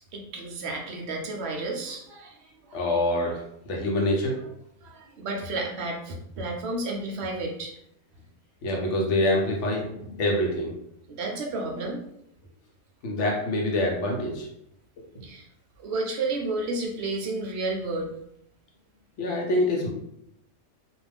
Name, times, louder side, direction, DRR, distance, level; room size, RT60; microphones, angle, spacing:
voice 1, 0.1-2.4 2.6-2.8 4.8-7.7 11.1-12.0 15.2-15.4 15.8-18.1, right 2 dB, 65° right, 1 dB, 0.7 m, -31 dB
voice 2, 2.7-4.4 8.6-10.7 13.0-14.5 19.2-19.9, left 1 dB, 60° left, 0 dB, 0.9 m, -25 dB
2.4 x 2.3 x 3.3 m, 0.76 s
omnidirectional pair, 1.5 m